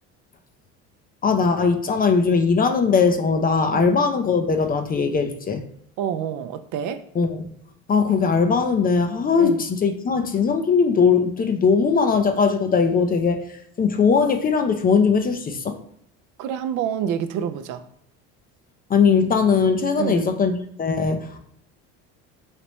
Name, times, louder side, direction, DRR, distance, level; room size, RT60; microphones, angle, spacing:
voice 1, 1.2-5.6 7.1-7.5 7.9-13.4 13.8-15.8 18.9-21.4, left 5 dB, 25° left, 6 dB, 0.5 m, -20 dB
voice 2, 6.0-7.0 9.4-9.6 16.4-17.8 20.0-20.3, right 8 dB, 60° right, 9 dB, 0.5 m, -27 dB
3.2 x 2.9 x 3.0 m, 0.71 s
supercardioid pair, 85°, 35 cm